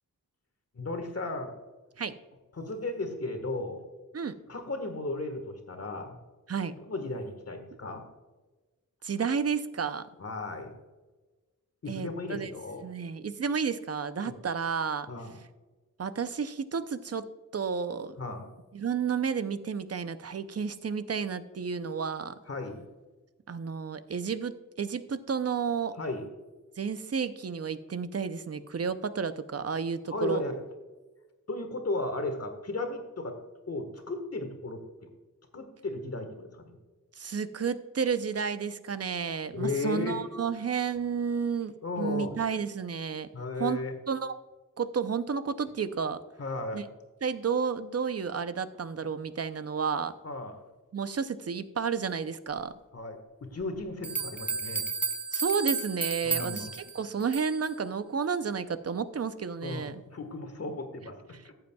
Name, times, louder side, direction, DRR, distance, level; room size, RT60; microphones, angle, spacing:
voice 1, 0.7-1.5 2.5-3.8 4.5-6.2 6.8-8.1 10.2-10.7 11.8-12.8 14.2-14.4 15.1-15.4 18.2-18.5 22.5-22.8 26.0-26.2 30.1-30.6 31.5-33.4 33.7-34.8 35.5-36.8 39.5-40.2 41.8-42.4 43.3-43.9 46.4-46.8 50.2-50.6 52.9-54.8 56.2-56.7 59.6-61.5, left 2 dB, 45° left, 6 dB, 1.5 m, -35 dB
voice 2, 9.0-10.1 11.9-12.5 12.8-15.1 16.0-17.2 17.5-18.2 18.7-22.4 23.5-26.0 26.8-30.4 37.2-43.3 43.6-44.3 44.8-46.2 46.7-46.8 47.2-50.1 50.9-52.7 55.3-56.7 56.9-60.0, right 6 dB, 45° right, 12 dB, 0.6 m, -31 dB
sound 1, 53.6-53.7 54.0-57.7, right 5 dB, 5° right, 0.8 m, -33 dB
14.5 x 7.8 x 2.3 m, 1.2 s
wide cardioid pair, 95°, 33 cm